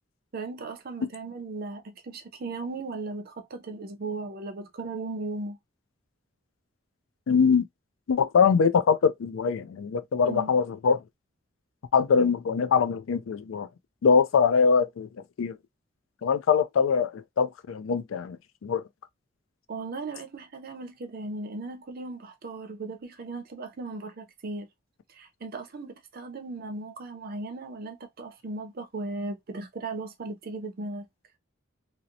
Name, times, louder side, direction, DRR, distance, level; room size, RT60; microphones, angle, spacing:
voice 1, 0.3-5.6 10.3-10.5 19.7-24.7 25.1-31.1, right 3 dB, 50° right, 0.5 m, -37 dB
voice 2, 7.3-7.7 8.1-11.0 11.9-13.7 14.0-15.1 15.4-15.6 16.2-18.4 18.6-18.8, left 6 dB, 80° left, 0.4 m, -23 dB
2.8 x 2.0 x 2.5 m
head